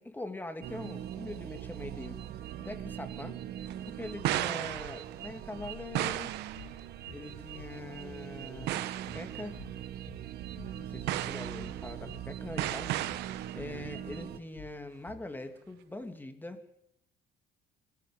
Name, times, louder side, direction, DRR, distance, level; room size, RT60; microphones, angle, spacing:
voice 1, 0.0-2.2 2.6-3.4 3.9-6.3 7.1-9.6 10.8-16.6, left 1 dB, 10° left, 7 dB, 2.8 m, -43 dB
sound 1, 0.6-14.4, right 11 dB, 70° right, 1.6 m, -42 dB
sound 2, 3.7-5.4 6.0-6.8 7.3-7.5 8.4-8.5 8.7-9.5 10.0-10.1 11.1-11.9 12.6-13.7, right 14 dB, 85° right, 1.1 m, -34 dB
sound 3, 5.6-15.4, left 7 dB, 90° left, 2.9 m, -52 dB
21.5 x 15.0 x 9.8 m, 0.80 s
cardioid pair, 110°, 17 cm